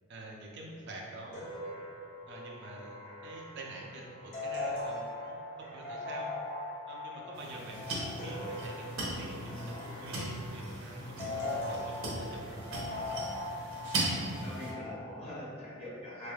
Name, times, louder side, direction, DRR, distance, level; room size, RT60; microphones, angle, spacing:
voice 1, 0.1-1.5 2.3-6.3 6.9-13.3, right 2 dB, 55° right, -2 dB, 0.5 m, -47 dB
sound 1, 1.3-15.0, left 2 dB, 55° left, 1.3 m, -40 dB
sound 2, 7.3-14.7, right 2 dB, 75° right, 0.9 m, -38 dB
voice 2, 14.4-16.3, left 1 dB, 30° left, -7 dB, 0.9 m, -43 dB
4.2 x 3.2 x 2.3 m, 2.3 s
head